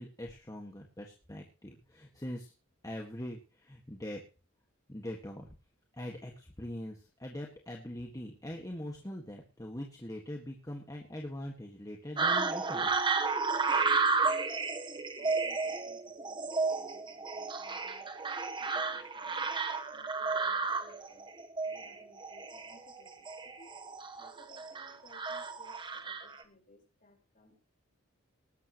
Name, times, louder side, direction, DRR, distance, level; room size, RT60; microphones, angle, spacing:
voice 1, 0.0-2.5 2.8-4.2 4.9-5.5 5.9-12.9, left 1 dB, 15° left, 0 dB, 1.8 m, -42 dB
sound 1, 12.2-26.4, right 4 dB, 25° right, 1.1 m, -32 dB
voice 2, 14.0-19.5 19.9-21.3 21.7-23.7 24.2-27.6, left 1 dB, 40° left, 2 dB, 4.9 m, -61 dB
20.0 x 11.5 x 3.1 m, 0.33 s
head